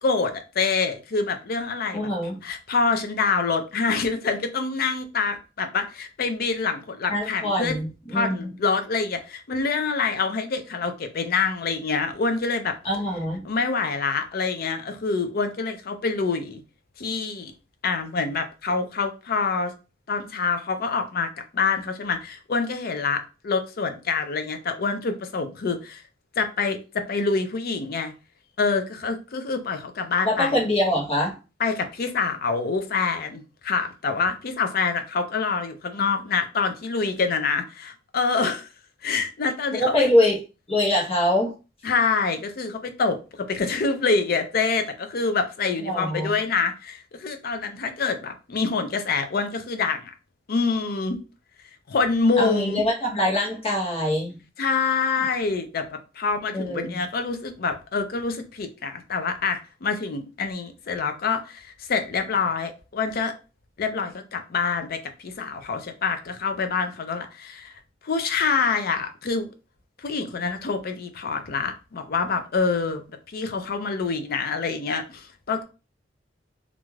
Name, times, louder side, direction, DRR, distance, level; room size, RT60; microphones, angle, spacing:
voice 1, 0.0-2.1 2.4-7.8 8.1-12.8 13.4-16.6 17.0-17.5 17.8-19.7 20.1-21.3 21.5-26.0 26.4-28.1 28.6-30.5 31.6-38.7 39.0-40.1 41.8-50.1 50.5-51.2 51.9-52.8 54.6-63.3 63.8-67.7 68.0-69.5 70.0-73.0 73.3-75.6, left 4 dB, 55° left, 0.4 m, -26 dB
voice 2, 1.9-2.4 7.1-8.5 12.8-13.4 30.2-31.4 39.7-40.4 40.7-41.5 45.9-46.4 52.4-54.4 56.5-57.0, left 1 dB, 30° left, 0.9 m, -24 dB
3.1 x 2.5 x 2.3 m
head